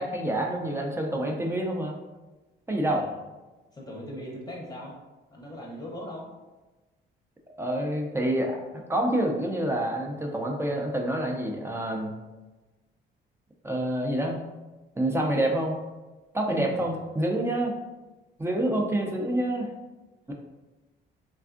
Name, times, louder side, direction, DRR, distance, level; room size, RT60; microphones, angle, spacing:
voice 1, 0.0-1.9 2.7-3.1 7.6-12.1 13.6-14.4 15.0-15.7 16.3-17.8 18.4-19.7 20.3-20.4, right 1 dB, 15° right, 0 dB, 0.4 m, -27 dB
voice 2, 2.8-3.1 3.7-5.0 5.3-6.3, equal, 20° left, -4 dB, 0.7 m, -39 dB
3.4 x 2.3 x 2.4 m, 1.2 s
cardioid pair, 90°, 20 cm